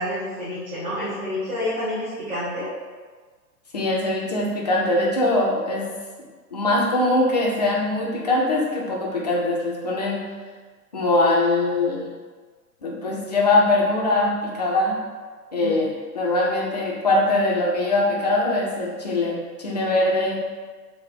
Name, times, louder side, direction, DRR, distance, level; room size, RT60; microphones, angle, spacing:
voice 1, 0.0-2.7 15.6-15.7, left 1 dB, 15° right, -13 dB, 0.7 m, -28 dB
voice 2, 3.7-5.9 6.5-10.3 10.9-12.1 12.8-15.0 15.5-20.4, left 2 dB, 30° left, -3 dB, 0.4 m, -22 dB
3.2 x 2.0 x 4.0 m, 1.4 s
figure-of-eight pair, 115°, 48 cm